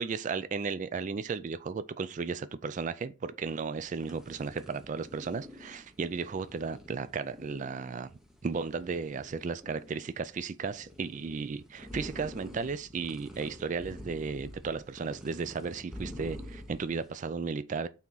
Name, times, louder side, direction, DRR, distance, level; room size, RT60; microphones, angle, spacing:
voice 1, 0.0-8.1 8.4-17.9, right 5 dB, 35° right, 0.3 m, -35 dB
sound 1, 3.8-17.2, left 1 dB, ahead, 1.0 m, -47 dB
5.9 x 4.3 x 3.9 m
head